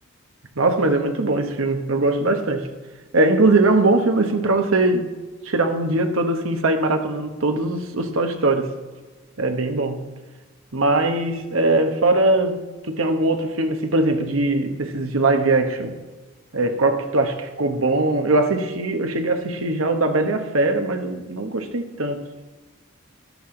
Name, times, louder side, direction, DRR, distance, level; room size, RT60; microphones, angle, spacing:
voice 1, 0.6-2.7 3.1-5.1 5.4-8.7 9.4-10.0 10.7-15.9 16.5-22.2, right 2 dB, 80° right, 6 dB, 1.2 m, -21 dB
13.5 x 11.5 x 3.9 m, 1.3 s
head